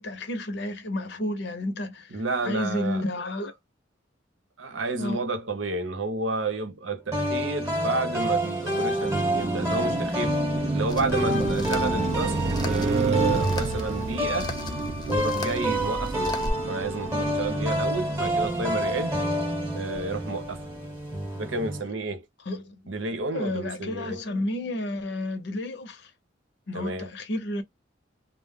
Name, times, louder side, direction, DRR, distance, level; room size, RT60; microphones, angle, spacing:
voice 1, 0.0-3.5 5.0-5.2 22.5-22.8 23.3-26.1 26.7-27.6, left 1 dB, 60° left, 0.7 m, -31 dB
voice 2, 2.1-3.0 4.6-10.4 10.7-12.4 12.6-14.5 15.0-19.2 19.7-20.7 21.4-22.3 22.9-24.2 26.7-27.1, right 3 dB, 75° right, 0.8 m, -30 dB
sound 1, 7.1-21.8, equal, 15° right, 0.9 m, -28 dB
Car passing by, 8.8-21.0, right 3 dB, 35° right, 0.3 m, -32 dB
sound 2, 10.9-16.5, left 1 dB, 20° left, 0.5 m, -38 dB
2.4 x 2.0 x 3.4 m
head